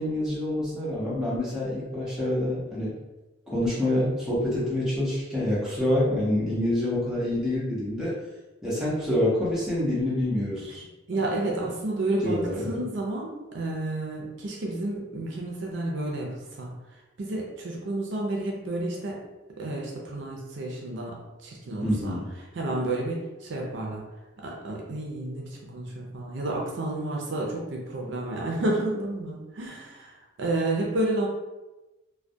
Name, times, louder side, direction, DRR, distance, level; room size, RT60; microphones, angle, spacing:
voice 1, 0.0-3.0 3.5-8.2 8.6-10.8 12.2-12.8 21.8-22.3, left 1 dB, 5° right, -9 dB, 0.7 m, -27 dB
voice 2, 11.1-19.2 19.6-22.2 22.5-24.1 24.4-31.3, right 2 dB, 60° right, -2 dB, 0.4 m, -31 dB
2.2 x 2.1 x 2.6 m, 1.1 s
head